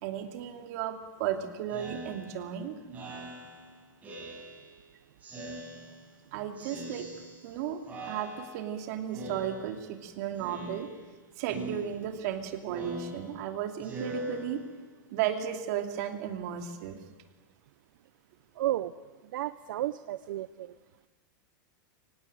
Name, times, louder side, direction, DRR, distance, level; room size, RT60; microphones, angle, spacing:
voice 1, 0.0-2.8 6.3-7.1 7.4-10.9 11.4-14.6 15.1-17.0, right 9 dB, 50° right, 6 dB, 2.8 m, -34 dB
Speech synthesizer, 1.7-4.8 5.2-6.2 6.6-7.6 7.9-8.8 9.1-10.0 10.4-11.2 11.5-15.0, right 1 dB, 15° right, 7.3 m, -43 dB
voice 2, 18.6-18.9 19.3-20.7, right 14 dB, 70° right, 13 dB, 0.8 m, -32 dB
24.5 x 18.0 x 9.1 m, 1.2 s
supercardioid pair, 165°, 11 cm